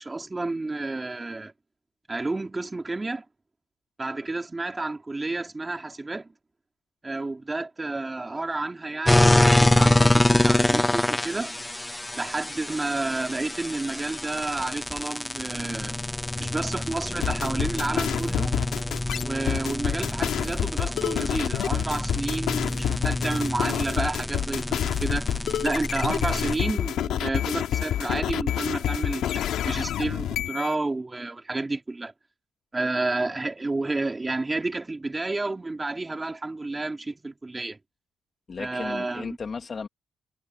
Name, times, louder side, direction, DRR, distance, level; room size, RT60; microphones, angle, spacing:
voice 1, 0.0-1.5 2.1-3.3 4.0-6.3 7.0-11.6 12.2-16.0 16.4-18.5 19.2-25.3 25.6-32.1 32.7-37.8 38.6-39.4, right 2 dB, 20° right, 3.7 m, -30 dB
sound 1, 9.0-26.6, left 1 dB, 10° left, 0.9 m, -26 dB
sound 2, 17.2-30.7, left 11 dB, 80° left, 2.4 m, -28 dB
voice 2, 38.5-39.9, left 5 dB, 40° left, 2.1 m, -35 dB
cardioid pair, 90°, 0 cm